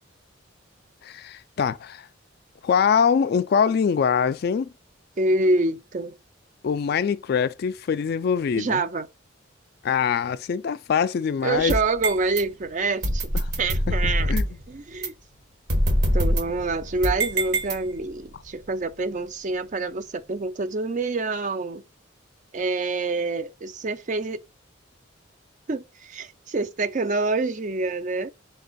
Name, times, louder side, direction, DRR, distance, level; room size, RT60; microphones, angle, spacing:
voice 1, 1.0-2.1 2.6-4.7 6.6-8.8 9.8-11.7 13.9-14.0 14.3-14.5, left 6 dB, 55° left, 0.3 m, -23 dB
voice 2, 5.2-6.2 8.6-9.1 11.4-13.3 13.6-14.3 14.7-15.1 16.1-21.8 22.5-24.4 25.7-28.3, right 3 dB, 40° right, 0.5 m, -26 dB
sound 1, 11.5-12.4 13.0-14.6 15.0-15.1 15.7-18.2, equal, 55° right, 1.2 m, -24 dB
5.2 x 2.5 x 3.9 m
head